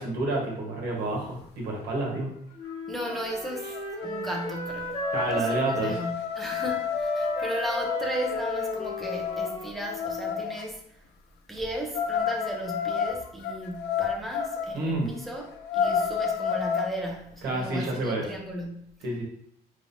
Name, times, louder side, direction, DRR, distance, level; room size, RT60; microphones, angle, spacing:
voice 1, 0.0-2.3 5.1-6.0 14.7-15.2 17.4-18.3 19.0-19.2, right 2 dB, 70° right, 1.2 m, -29 dB
Wind instrument woodwind instrument, 2.6-10.3, equal, 30° left, 1.2 m, -35 dB
sound 1, 2.7-2.8 3.1-3.4 3.7-10.6 11.9-14.7 15.1-15.2 15.6-16.9, left 7 dB, 80° left, 0.5 m, -30 dB
voice 2, 2.9-3.7 4.0-11.0 11.5-15.5 15.7-18.9, equal, ahead, 0.6 m, -35 dB
3.7 x 3.3 x 2.6 m
cardioid pair, 110°, 17 cm